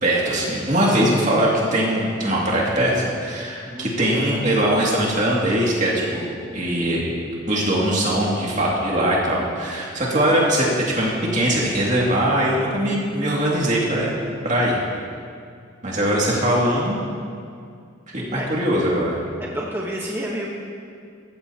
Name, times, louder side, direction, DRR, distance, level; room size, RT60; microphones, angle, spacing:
voice 1, 0.0-7.1 7.5-14.2 14.4-14.8 15.8-17.0 18.1-19.2, right 1 dB, 40° right, -4 dB, 2.3 m, -21 dB
voice 2, 19.4-20.5, right 1 dB, 10° right, -3 dB, 1.1 m, -29 dB
15.0 x 14.5 x 2.9 m, 2.3 s
head